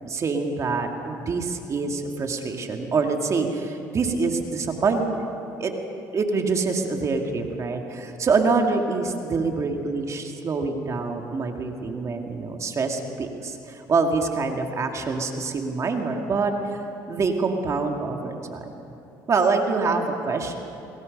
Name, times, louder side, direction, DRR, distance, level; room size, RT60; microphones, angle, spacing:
voice 1, 0.0-5.3 5.6-5.7 6.1-16.8 17.1-18.9 19.3-20.6, right 4 dB, 40° right, 3 dB, 2.4 m, -25 dB
29.5 x 22.0 x 5.5 m, 2.8 s
supercardioid pair, 85°, 8 cm